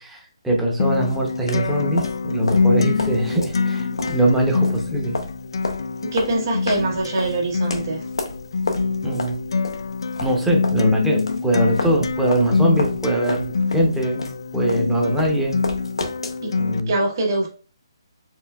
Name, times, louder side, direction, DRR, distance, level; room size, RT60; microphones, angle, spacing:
voice 1, 0.0-5.1 9.0-9.4 10.2-15.6 16.6-16.9, right 1 dB, 5° right, 0.8 m, -22 dB
Acoustic guitar, 0.8-16.8, left 4 dB, 65° left, 0.4 m, -25 dB
sound 1, 1.1-10.8 11.2-16.4, left 2 dB, 85° left, 0.8 m, -31 dB
voice 2, 6.1-8.0 16.4-16.5 16.9-17.5, right 2 dB, 45° right, 1.7 m, -23 dB
4.5 x 3.1 x 2.3 m
hypercardioid pair, 150°, 3 cm